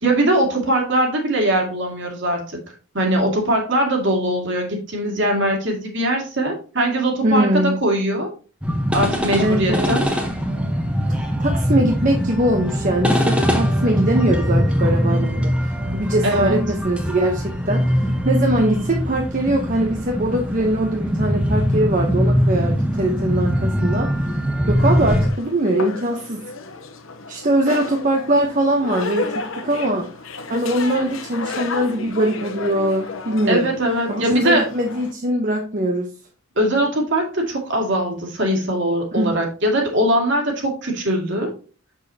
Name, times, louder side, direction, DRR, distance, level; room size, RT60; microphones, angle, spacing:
voice 1, 0.0-2.4 2.9-8.3 8.9-10.1 16.2-16.6 33.5-34.6 36.6-41.5, right 1 dB, 60° right, 1 dB, 2.3 m, -21 dB
voice 2, 7.2-7.8 9.4-9.8 11.4-24.4 24.7-26.4 27.3-30.1 30.5-33.7 34.1-36.1 39.1-39.3, right 1 dB, 40° right, 1 dB, 0.9 m, -22 dB
sound 1, 8.6-25.3, equal, 5° right, 1.0 m, -21 dB
sound 2, 24.8-35.1, left 4 dB, 65° left, 0.9 m, -33 dB
7.2 x 6.3 x 2.8 m, 0.36 s
head